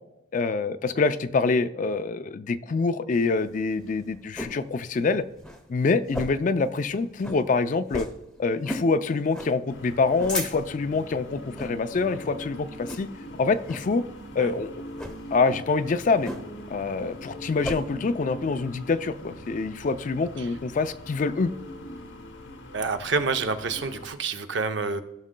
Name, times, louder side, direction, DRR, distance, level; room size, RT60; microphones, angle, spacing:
voice 1, 0.3-5.2 5.7-8.1 8.4-13.1 13.4-14.0 14.4-14.7 15.3-16.3 16.7-21.5, left 4 dB, 40° left, 12 dB, 0.4 m, -25 dB
sound 1, 3.4-4.6 5.0-5.1 5.4-5.6 6.1-6.5 6.8-6.9 7.2-7.4 7.9-8.2 8.6-8.9 9.3-9.5 10.0-10.8 11.5-11.8 12.2-12.4 12.9-13.3 13.7-13.9 14.9-15.2 16.2-16.7 17.0-17.8, left 1 dB, 5° left, 0.9 m, -34 dB
sound 2, 9.7-24.1, equal, 65° left, 0.9 m, -42 dB
voice 2, 22.7-25.0, right 4 dB, 65° right, 8 dB, 0.7 m, -28 dB
16.0 x 6.2 x 2.2 m, 0.92 s
head